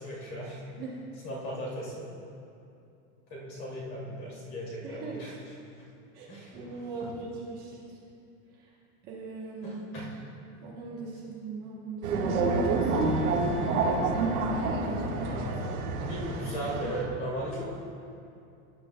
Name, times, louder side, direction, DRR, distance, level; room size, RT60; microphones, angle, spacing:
voice 1, 0.0-0.6 1.2-2.1 3.3-5.3 6.3-7.1 9.6-10.1 10.9-11.0 15.3-17.7, equal, 30° left, -4 dB, 2.4 m, -37 dB
voice 2, 0.6-1.1 4.8-5.3 6.1-8.0 8.6-8.8 9.0-9.8 10.6-13.6 14.7-15.4, right 3 dB, 25° right, -4 dB, 0.9 m, -40 dB
sound 1, 12.0-17.0, right 3 dB, 75° right, 1.7 m, -28 dB
18.5 x 10.5 x 2.2 m, 2.6 s
supercardioid pair, 175°, 43 cm